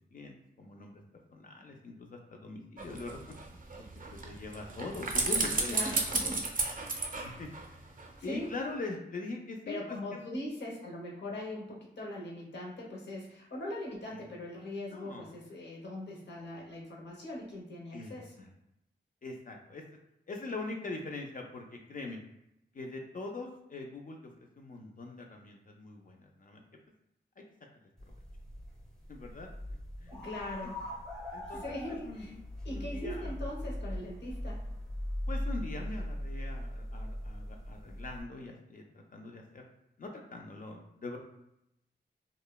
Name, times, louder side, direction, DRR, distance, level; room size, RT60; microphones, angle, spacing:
voice 1, 0.1-1.0 1.3-3.3 3.8-6.4 7.2-7.9 8.2-10.2 14.1-14.2 14.9-15.3 17.9-18.5 19.2-19.8 20.3-22.2 22.7-26.6 27.4-27.5 29.1-29.5 30.0-30.1 30.6-30.7 31.3-31.7 32.0-33.4 35.3-39.6 40.0-41.2, left 3 dB, 50° left, 1 dB, 0.4 m, -43 dB
sound 1, 2.8-8.1 8.4-8.5, right 3 dB, 50° right, 0.4 m, -34 dB
voice 2, 5.7-6.4 8.2-8.5 9.7-18.4 30.1-30.8 31.5-32.3 32.6-34.7, left 1 dB, 70° left, -3 dB, 0.7 m, -41 dB
sound 2, 28.0-38.2, left 1 dB, 5° left, 0.7 m, -39 dB
2.9 x 2.0 x 2.2 m, 0.82 s
wide cardioid pair, 75°, 18 cm